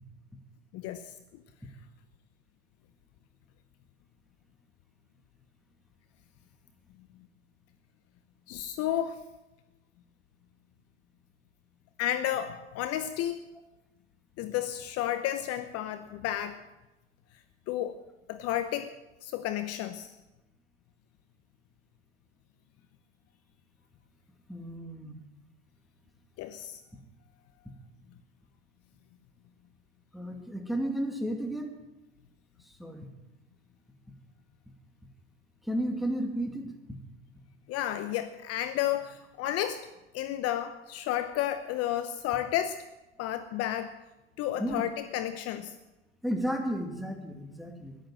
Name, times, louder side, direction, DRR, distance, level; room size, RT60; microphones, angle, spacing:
voice 1, 0.7-1.1 1.3-1.4 8.5-9.2 12.0-13.4 14.4-16.6 17.7-18.0 18.3-18.9 19.2-20.1 26.4-26.8 37.7-39.9 40.1-42.8 43.2-43.9 44.4-45.8, left 12 dB, 45° left, 11 dB, 0.9 m, -32 dB
voice 2, 24.5-25.2 30.1-31.7 32.8-33.1 35.6-37.0 44.6-44.8 46.2-48.0, right 1 dB, ahead, 3 dB, 2.3 m, -33 dB
13.5 x 11.5 x 7.5 m, 0.99 s
hypercardioid pair, 95°, 35 cm